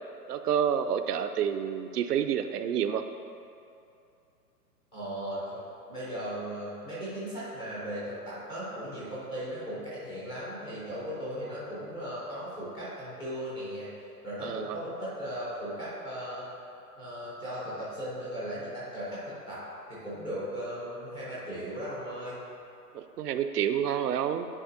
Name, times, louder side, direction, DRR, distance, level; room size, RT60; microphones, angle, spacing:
voice 1, 0.3-3.0 14.4-14.8 22.9-24.5, right 8 dB, 75° right, 9 dB, 0.5 m, -29 dB
voice 2, 4.9-5.6 5.9-13.9 14.2-16.5 16.9-22.3, equal, 5° left, -11 dB, 0.4 m, -37 dB
9.8 x 4.1 x 2.6 m, 2.6 s
figure-of-eight pair, 120°, 48 cm